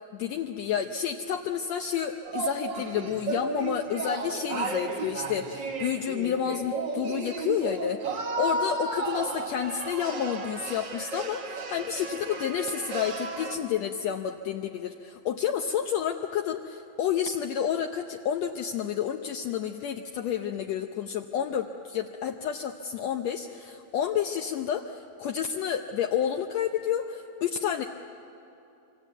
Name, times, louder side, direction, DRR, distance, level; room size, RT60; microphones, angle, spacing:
voice 1, 0.1-27.8, left 9 dB, 70° left, 4 dB, 1.9 m, -30 dB
sound 1, 2.2-13.6, right 4 dB, 45° right, 1.8 m, -33 dB
25.5 x 25.5 x 8.2 m, 2.8 s
omnidirectional pair, 3.4 m